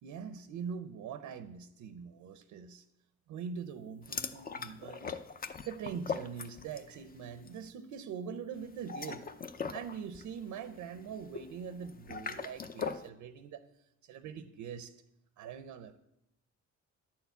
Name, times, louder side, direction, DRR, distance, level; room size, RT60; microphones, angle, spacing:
voice 1, 0.0-2.8 3.3-5.1 5.6-9.3 9.7-13.6 14.0-14.9 15.4-16.0, right 7 dB, 85° right, 11 dB, 0.7 m, -43 dB
sound 1, 4.0-7.0 7.2-7.6 8.7-13.1, left 5 dB, 30° left, 0.6 m, -41 dB
10.5 x 4.6 x 8.1 m, 0.83 s
cardioid pair, 90°, 30 cm